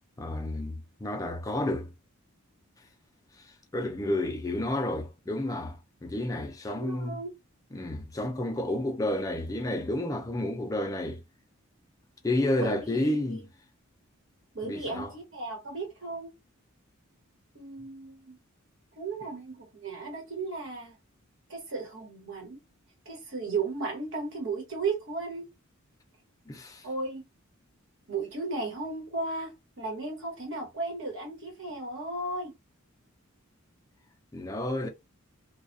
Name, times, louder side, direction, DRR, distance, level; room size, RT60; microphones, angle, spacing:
voice 1, 0.2-1.9 3.7-5.8 6.0-7.2 7.7-11.2 12.2-13.5 14.6-15.1 26.5-26.8 34.3-34.9, left 1 dB, 15° left, 0.4 m, -30 dB
voice 2, 6.7-7.3 12.6-13.4 14.5-16.3 17.5-18.4 19.0-20.9 21.5-22.6 23.0-25.5 26.8-27.2 28.1-32.5, right 3 dB, 65° right, 1.2 m, -35 dB
2.3 x 2.2 x 2.6 m
head